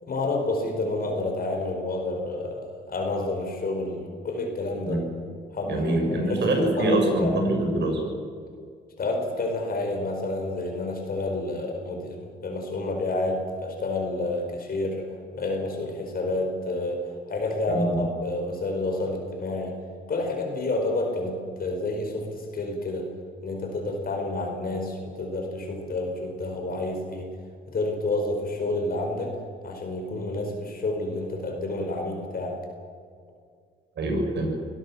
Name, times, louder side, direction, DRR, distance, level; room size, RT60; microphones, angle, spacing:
voice 1, 0.0-5.0 5.5-7.4 9.0-19.8 20.1-23.1 23.4-27.3 27.7-29.3 29.6-32.6, left 2 dB, 50° left, 2 dB, 4.8 m, -29 dB
voice 2, 5.6-8.0 17.7-18.0 34.0-34.5, right 1 dB, 60° right, 3 dB, 7.0 m, -24 dB
24.0 x 17.5 x 7.3 m, 2.2 s
cardioid pair, 90°, 20 cm